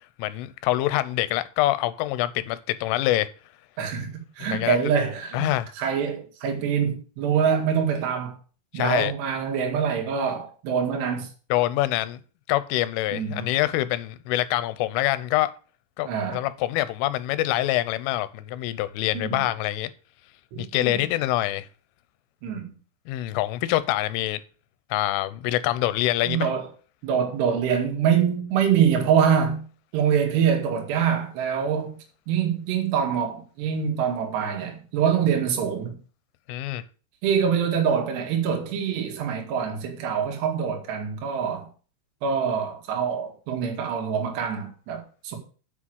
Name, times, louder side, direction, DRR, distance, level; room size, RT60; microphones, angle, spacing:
voice 1, 0.2-3.3 4.4-4.9 5.3-5.7 8.7-9.1 11.5-12.2 12.5-15.5 16.0-19.9 20.6-21.7 23.1-24.4 24.9-26.5 36.5-36.8, left 15 dB, 85° left, 3.2 m, -25 dB
voice 2, 3.8-4.1 4.4-5.5 5.8-8.3 8.7-11.3 13.1-13.5 16.1-16.4 19.1-19.4 20.5-21.0 22.4-22.7 26.3-26.7 27.0-29.6 29.9-32.0 32.3-36.0 37.2-41.7 42.2-45.4, right 7 dB, 65° right, 3.8 m, -25 dB
8.1 x 6.2 x 7.7 m
omnidirectional pair, 5.7 m